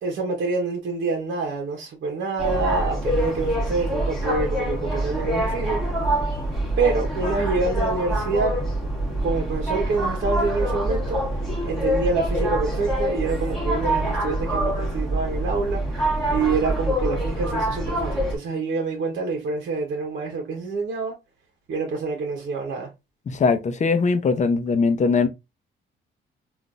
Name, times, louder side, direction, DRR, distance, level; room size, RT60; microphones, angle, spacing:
voice 1, 0.0-5.8 6.8-8.5 9.2-11.2 11.6-21.1 21.7-22.9, right 4 dB, 65° right, 1.0 m, -27 dB
sound 1, 2.4-18.4, right 1 dB, ahead, 1.4 m, -25 dB
voice 2, 23.3-25.3, left 4 dB, 35° left, 0.6 m, -20 dB
3.8 x 2.5 x 2.3 m
cardioid pair, 90°, 20 cm